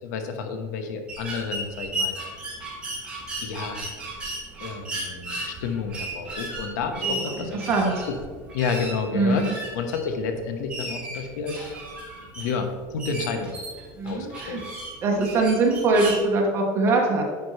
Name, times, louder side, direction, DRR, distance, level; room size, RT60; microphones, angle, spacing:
voice 1, 0.0-2.2 3.4-3.8 4.6-7.9 8.5-9.4 9.7-11.7 12.4-13.5 14.0-14.6, left 5 dB, 80° left, 6 dB, 1.0 m, -30 dB
sound 1, 1.1-16.2, right 2 dB, 10° right, 2.0 m, -35 dB
voice 2, 7.0-7.9 9.1-9.5 14.0-14.6 15.0-17.2, right 3 dB, 25° right, 0 dB, 1.2 m, -23 dB
9.2 x 5.3 x 3.3 m, 1.5 s
supercardioid pair, 165°, 9 cm